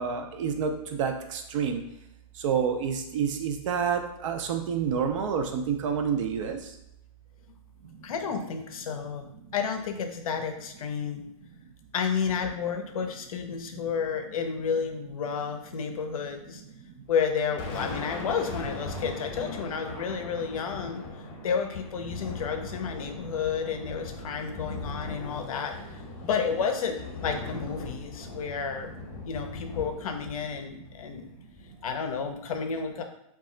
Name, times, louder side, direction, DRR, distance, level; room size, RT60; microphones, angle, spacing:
voice 1, 0.0-1.8 2.3-6.8 7.8-8.1 9.3-9.5 11.1-11.3 16.8-17.1 20.9-21.5 24.4-24.7 28.2-28.4 31.1-31.8, right 7 dB, 60° right, 5 dB, 0.5 m, -30 dB
voice 2, 8.0-9.3 9.5-11.2 11.9-16.6 17.1-21.0 21.4-28.9 29.2-31.2 31.8-33.0, left 6 dB, 75° left, 6 dB, 0.5 m, -31 dB
Thunder, 17.2-31.8, left 3 dB, 40° left, 0.7 m, -39 dB
2.3 x 2.0 x 3.6 m, 0.81 s
hypercardioid pair, 135°, 18 cm